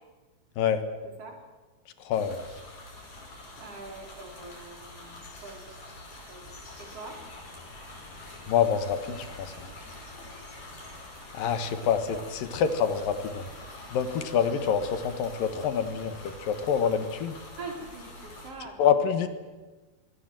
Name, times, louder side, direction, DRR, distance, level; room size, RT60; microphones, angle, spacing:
voice 1, 1.0-1.4 2.4-2.6 3.6-5.8 6.3-6.5 6.8-7.2 17.6-19.3, right 3 dB, 40° right, 3 dB, 4.5 m, -44 dB
voice 2, 2.0-2.4 8.5-9.7 11.3-13.4 13.9-17.4 18.8-19.3, left 7 dB, 65° left, 10 dB, 2.9 m, -26 dB
sound 1, 2.1-18.5, left 2 dB, 45° left, 6.6 m, -45 dB
25.5 x 21.5 x 7.7 m, 1.3 s
omnidirectional pair, 4.7 m